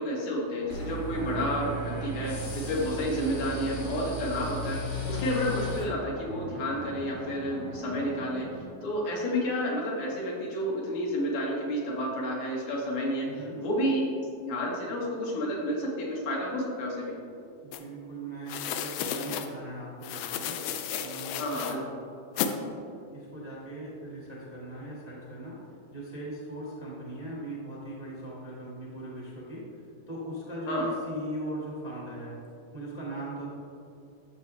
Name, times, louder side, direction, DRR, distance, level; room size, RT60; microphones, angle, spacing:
voice 1, 0.0-4.8 5.1-8.5 8.8-13.3 13.6-14.0 14.4-17.1 21.4-21.8 30.7-30.9, equal, 70° left, -3 dB, 3.4 m, -30 dB
sound 1, 0.6-8.6, right 2 dB, 90° right, 3.1 m, -42 dB
sound 2, 0.7-5.8, equal, 50° left, 1.7 m, -35 dB
voice 2, 13.2-13.6 17.6-20.6 20.9-21.9 22.3-22.6 23.1-25.6 25.9-29.6 30.1-32.4 32.7-33.5, right 1 dB, 30° right, -6 dB, 0.7 m, -39 dB
sound 3, 17.7-17.8 18.5-19.5 20.0-21.8 22.4-22.5, left 9 dB, 85° left, 2.6 m, -33 dB
12.5 x 6.9 x 3.4 m, 2.5 s
omnidirectional pair, 4.4 m